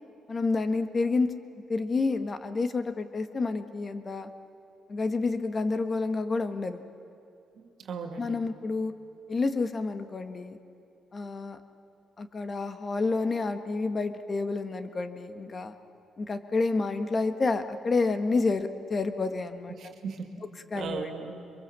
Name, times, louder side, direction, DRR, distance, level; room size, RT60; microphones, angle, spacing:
voice 1, 0.3-1.3 1.7-4.3 4.9-6.8 8.2-8.9 9.3-10.6 11.1-11.6 12.2-15.7 16.2-19.7 20.7-21.4, left 3 dB, 35° left, 9 dB, 1.5 m, -29 dB
voice 2, 7.6-8.4 19.7-20.3 20.7-21.4, right 6 dB, 65° right, 5 dB, 2.4 m, -37 dB
23.5 x 23.0 x 7.6 m, 2.6 s
cardioid pair, 90°, 0 cm